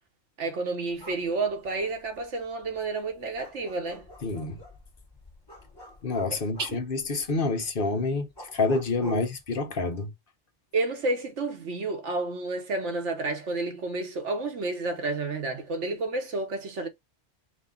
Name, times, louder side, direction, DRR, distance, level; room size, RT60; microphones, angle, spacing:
voice 1, 0.4-4.1 6.3-6.4 6.7-6.8 9.0-9.2 10.7-16.9, right 3 dB, 80° right, 1.5 m, -30 dB
sound 1, 0.9-10.0, equal, 20° left, 1.4 m, -50 dB
voice 2, 4.2-4.6 6.0-10.1, left 3 dB, 50° left, 1.1 m, -28 dB
5.1 x 2.4 x 3.8 m
omnidirectional pair, 1.2 m